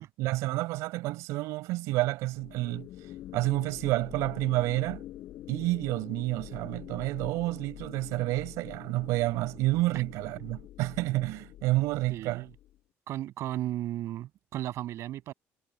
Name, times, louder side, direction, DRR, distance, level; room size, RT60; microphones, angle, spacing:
voice 1, 0.0-2.9 3.3-5.0 5.5-12.5, right 19 dB, 90° right, 5.5 m, -29 dB
sound 1, 2.3-12.8, left 13 dB, 65° left, 4.7 m, -46 dB
voice 2, 12.1-12.5 13.1-15.3, right 13 dB, 65° right, 6.6 m, -35 dB
cardioid pair, 130°, 5 cm